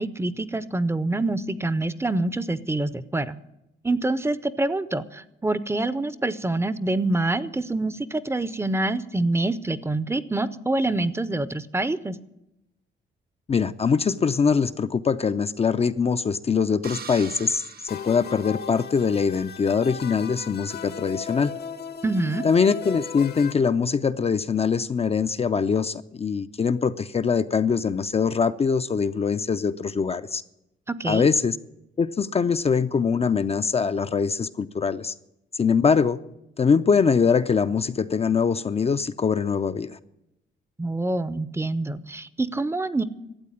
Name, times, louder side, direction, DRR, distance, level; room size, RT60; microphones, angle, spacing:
voice 1, 0.0-3.4 3.8-12.2 22.0-22.4 30.9-31.3 40.8-43.0, right 2 dB, 15° right, 16 dB, 0.6 m, -26 dB
voice 2, 13.5-21.5 22.4-30.4 31.0-31.6 32.0-35.1 35.5-36.2 36.6-40.0, left 5 dB, 30° left, 10 dB, 0.5 m, -23 dB
sound 1, 16.8-19.1, right 6 dB, 50° right, 1.0 m, -42 dB
sound 2, 17.9-23.5, left 7 dB, 55° left, 0.9 m, -37 dB
12.5 x 8.4 x 9.8 m, 0.87 s
cardioid pair, 90°, 20 cm